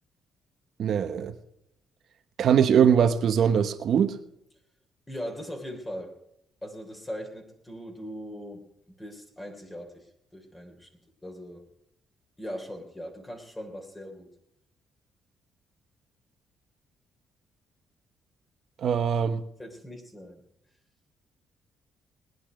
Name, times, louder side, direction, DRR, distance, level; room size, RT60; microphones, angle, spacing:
voice 1, 0.8-1.3 2.4-4.1 18.8-19.4, right 8 dB, 65° right, 9 dB, 1.2 m, -22 dB
voice 2, 5.1-6.1 6.6-10.9 11.2-11.6 12.4-14.3 19.6-20.4, equal, 15° left, 3 dB, 3.3 m, -40 dB
20.0 x 10.0 x 5.1 m, 0.77 s
cardioid pair, 90°, 0 cm